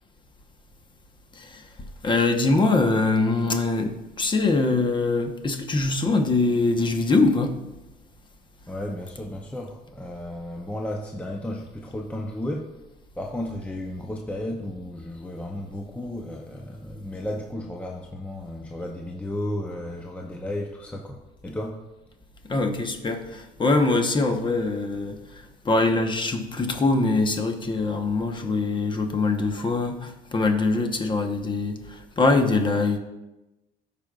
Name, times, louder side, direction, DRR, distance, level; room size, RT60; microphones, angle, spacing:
voice 1, 1.3-1.7 2.0-7.6 22.4-33.0, left 3 dB, 30° left, 5 dB, 1.0 m, -23 dB
voice 2, 8.7-12.7 13.2-21.8, left 1 dB, 10° left, 1 dB, 0.6 m, -33 dB
13.5 x 5.2 x 2.4 m, 1.0 s
cardioid pair, 110°, 17 cm